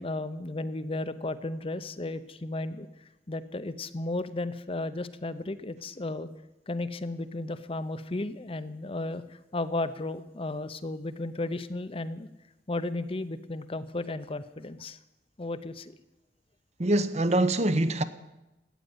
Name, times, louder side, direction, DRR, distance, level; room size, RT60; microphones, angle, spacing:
voice 1, 0.0-2.9 3.3-6.3 6.7-9.2 9.5-12.3 12.7-15.0 15.4-15.9, left 2 dB, 30° left, 0.7 m, -34 dB
voice 2, 16.8-18.0, right 1 dB, 40° right, 0.8 m, -24 dB
14.5 x 9.1 x 9.6 m
head